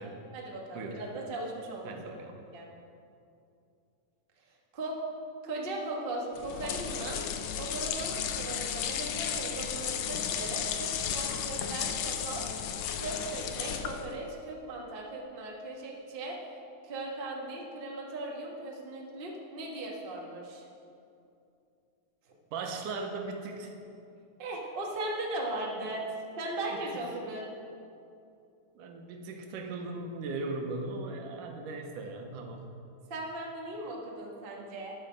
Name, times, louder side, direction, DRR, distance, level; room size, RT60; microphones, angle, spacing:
voice 1, 0.0-2.0 2.5-2.7 4.7-5.0 5.4-7.2 7.5-12.7 13.0-16.4 16.8-20.6 24.4-26.0 26.3-27.5 33.1-34.9, right 2 dB, 30° right, -2 dB, 0.9 m, -38 dB
voice 2, 1.9-2.4 22.5-23.7 26.7-26.8 28.8-32.7, right 3 dB, 85° right, 3 dB, 2.6 m, -38 dB
sound 1, 6.3-14.2, left 8 dB, 90° left, 1.3 m, -34 dB
12.0 x 10.0 x 5.2 m, 2.6 s
omnidirectional pair, 3.6 m